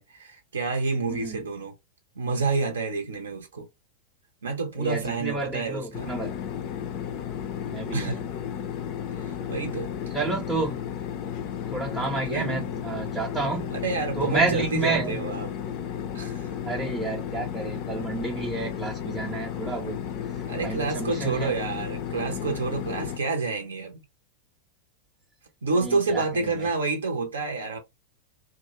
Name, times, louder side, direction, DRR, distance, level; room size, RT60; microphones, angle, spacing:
voice 1, 0.0-1.7 2.2-3.7 4.4-6.1 7.9-8.2 9.2-10.1 12.3-12.6 13.7-15.5 16.1-16.4 20.5-24.0 25.6-27.8, right 4 dB, 70° right, 0.6 m, -28 dB
voice 2, 1.1-1.4 4.8-6.3 7.7-8.2 10.1-10.8 11.7-13.8 14.2-15.3 16.6-21.5 25.8-26.7, right 3 dB, 10° right, 0.5 m, -30 dB
sound 1, 5.9-23.2, left 8 dB, 45° left, 0.4 m, -33 dB
2.3 x 2.0 x 2.9 m
figure-of-eight pair, 90°, 0 cm